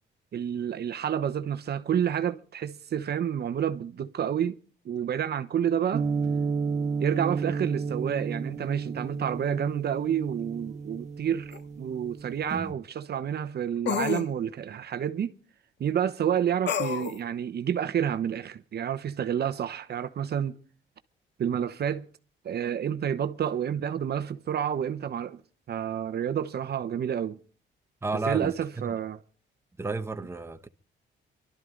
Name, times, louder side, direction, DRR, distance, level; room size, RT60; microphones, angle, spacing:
voice 1, 0.3-4.6 4.8-6.1 7.0-15.3 15.8-20.5 21.4-22.1 22.4-25.4 25.7-27.4 28.3-29.2, right 9 dB, 55° right, 1.0 m, -29 dB
sound 1, 5.9-12.7, right 5 dB, 35° right, 1.9 m, -32 dB
sound 2, 11.5-11.6 13.9-14.3 16.7-17.2, left 7 dB, 60° left, 1.2 m, -29 dB
voice 2, 28.0-28.5 28.8-28.9 29.8-30.7, right 3 dB, 15° right, 1.1 m, -32 dB
24.5 x 12.5 x 3.9 m
cardioid pair, 90°, 20 cm